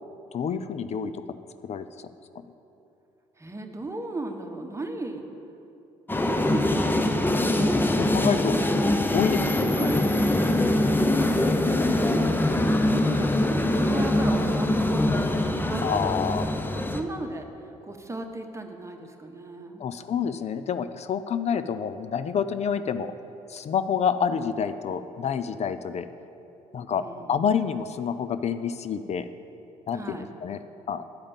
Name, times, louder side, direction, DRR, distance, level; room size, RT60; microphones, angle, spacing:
voice 1, 0.3-1.2 1.6-1.9 7.8-8.6 9.1-9.9 15.8-16.5 19.8-23.1 23.5-26.1 26.7-29.3 29.9-30.6 30.9-31.0, left 7 dB, 45° left, 11 dB, 0.5 m, -28 dB
voice 2, 3.4-5.3 6.1-7.5 8.7-8.9 9.8-10.4 10.7-12.3 13.0-15.2 15.6-16.4 16.7-17.5 17.8-19.9 26.9-27.4 29.9-30.3, right 2 dB, 20° right, 4 dB, 1.1 m, -36 dB
sound 1, 6.1-17.0, left 1 dB, 15° left, 0.8 m, -23 dB
10.5 x 5.0 x 7.3 m, 2.9 s
hypercardioid pair, 50°, 16 cm